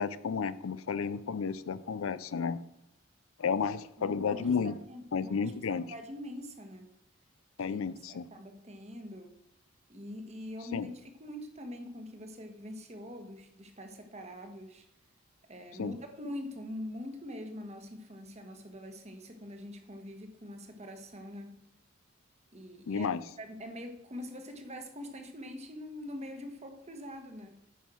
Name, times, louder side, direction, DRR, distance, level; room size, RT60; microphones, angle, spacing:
voice 1, 0.0-2.6 3.4-4.7 5.1-5.8 7.6-8.3 10.7-10.9 15.8-15.9 22.9-23.2, left 6 dB, 90° left, 16 dB, 0.5 m, -32 dB
voice 2, 4.0-6.9 7.7-9.3 9.9-14.9 15.5-21.5 22.5-27.6, left 1 dB, 35° right, 5 dB, 1.3 m, -44 dB
9.4 x 5.5 x 6.2 m, 0.83 s
head